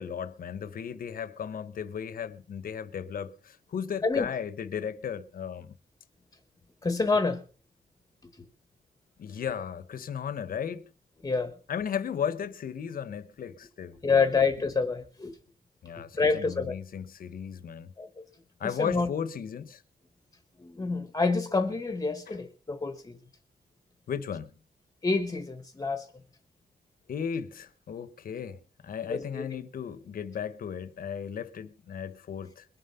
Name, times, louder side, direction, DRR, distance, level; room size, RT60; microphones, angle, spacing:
voice 1, 0.0-5.7 9.2-10.8 11.7-14.3 15.8-17.9 18.6-19.8 22.3-22.4 24.1-24.6 27.1-32.6, left 8 dB, 60° left, 1.0 m, -35 dB
voice 2, 6.8-7.4 11.2-11.5 14.0-15.3 16.1-16.7 18.0-18.1 18.6-19.1 20.6-23.2 25.0-26.1 29.1-29.4, left 4 dB, 20° left, 1.2 m, -27 dB
22.0 x 7.7 x 5.6 m
wide cardioid pair, 160°, 17 cm